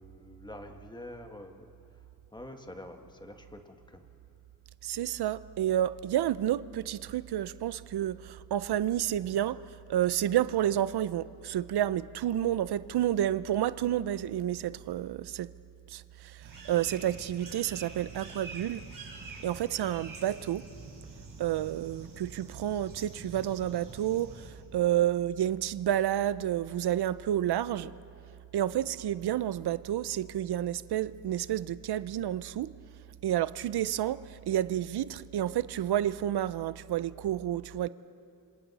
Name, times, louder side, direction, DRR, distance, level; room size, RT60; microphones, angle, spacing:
voice 1, 0.0-1.7 2.3-4.0, left 1 dB, 10° left, 5 dB, 1.3 m, -46 dB
voice 2, 4.8-9.6 9.9-15.5 15.9-18.8 19.4-20.6 21.4-24.4 24.7-27.9 28.5-32.7 33.2-37.9, right 11 dB, 85° right, 17 dB, 0.6 m, -30 dB
sound 1, 16.4-24.5, right 3 dB, 60° right, 5.2 m, -47 dB
27.5 x 26.0 x 4.1 m, 2.9 s
wide cardioid pair, 155°, 38 cm